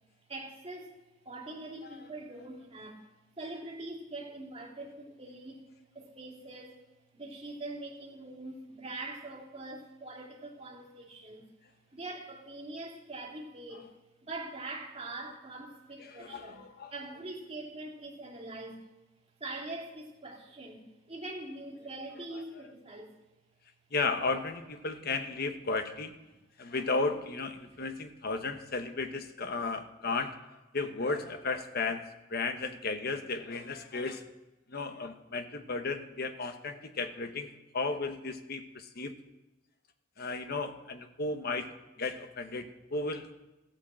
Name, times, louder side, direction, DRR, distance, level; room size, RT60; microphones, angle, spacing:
voice 1, 0.3-3.0 3.4-5.7 5.9-6.8 7.1-11.5 11.9-13.9 14.2-16.7 16.9-18.8 19.4-23.2, right 2 dB, 30° right, -1 dB, 2.6 m, -43 dB
voice 2, 16.0-16.9 23.9-26.1 26.6-30.4 30.7-32.0 32.3-34.2 34.7-39.1 40.2-41.7 42.0-43.3, left 3 dB, 55° left, 7 dB, 1.1 m, -34 dB
14.5 x 9.0 x 7.5 m, 1.0 s
head